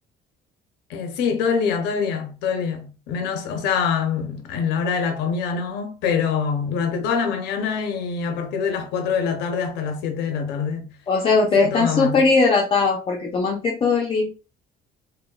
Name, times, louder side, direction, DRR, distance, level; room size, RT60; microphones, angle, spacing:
voice 1, 0.9-10.9 11.6-12.3, left 6 dB, 90° left, 0.6 m, -25 dB
voice 2, 11.1-14.3, left 4 dB, 30° left, 0.5 m, -19 dB
2.9 x 2.2 x 2.2 m
cardioid pair, 110°, 17 cm